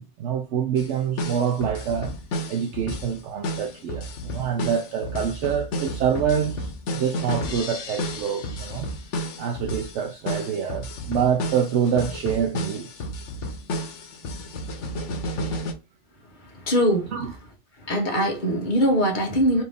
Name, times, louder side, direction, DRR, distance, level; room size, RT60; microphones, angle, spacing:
voice 1, 0.0-2.1 2.5-8.9 9.4-13.1 17.1-17.3, right 8 dB, 75° right, 0.9 m, -26 dB
sound 1, 0.8-0.9 1.2-15.7, equal, 80° left, 1.1 m, -32 dB
voice 2, 16.7-17.1 17.9-19.6, equal, 45° left, 1.3 m, -21 dB
4.2 x 2.7 x 3.4 m
omnidirectional pair, 1.2 m